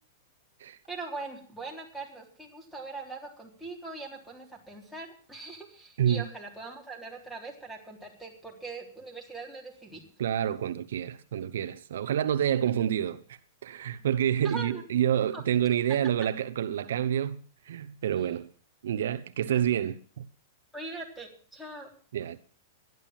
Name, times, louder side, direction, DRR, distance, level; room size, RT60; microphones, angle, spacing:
voice 1, 0.9-10.0 14.4-14.8 15.3-15.4 19.5-19.6 20.7-21.9, right 3 dB, ahead, 3.7 m, -41 dB
voice 2, 10.2-18.5 18.8-20.3 22.1-22.4, right 10 dB, 80° right, 0.9 m, -28 dB
12.5 x 11.0 x 7.4 m
supercardioid pair, 150°, 0 cm